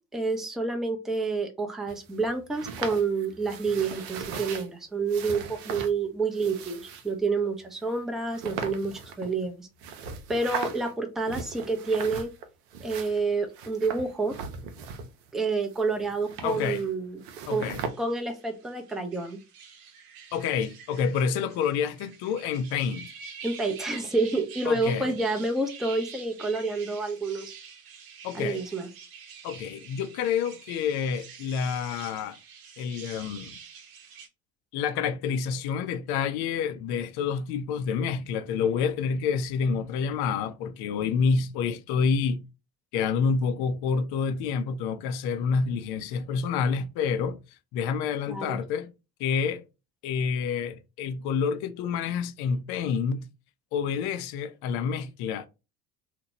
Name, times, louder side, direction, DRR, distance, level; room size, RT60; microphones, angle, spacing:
voice 1, 0.1-9.7 10.3-12.3 12.8-14.3 15.3-17.2 17.5-17.6 18.0-19.4 23.4-27.5 28.3-28.9 48.3-48.6, right 3 dB, ahead, 0.5 m, -28 dB
sound 1, 1.9-4.7 5.1-5.9 6.3-7.1 7.8-7.9 8.3-9.5 9.8-10.9 11.2-12.5 12.7-15.3 15.6-16.9 17.2-17.9, right 6 dB, 80° right, 0.6 m, -38 dB
voice 2, 16.4-16.8 17.5-17.8 20.3-23.1 24.6-25.1 28.2-28.6 29.4-32.4 32.8-33.6 34.7-42.4 42.9-47.4 47.7-48.9 49.2-49.6 50.0-53.3 53.7-55.5, left 6 dB, 55° left, 0.6 m, -28 dB
sound 2, 17.5-34.3, right 6 dB, 50° right, 0.9 m, -47 dB
2.9 x 2.1 x 2.8 m
hypercardioid pair, 70°, 46 cm